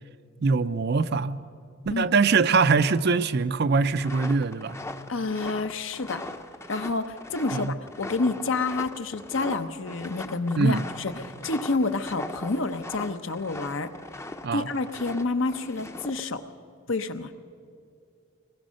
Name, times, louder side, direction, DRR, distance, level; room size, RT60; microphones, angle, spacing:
voice 1, 0.4-1.4 1.8-4.8 7.5-7.7 10.6-10.8 14.4-14.7, right 4 dB, 50° right, 0.5 m, -23 dB
sound 1, 4.0-16.2, left 2 dB, 15° left, 0.7 m, -39 dB
voice 2, 5.1-6.2 6.7-13.9 14.5-16.4 16.9-17.3, left 3 dB, 65° left, 0.9 m, -29 dB
23.5 x 20.0 x 6.4 m
head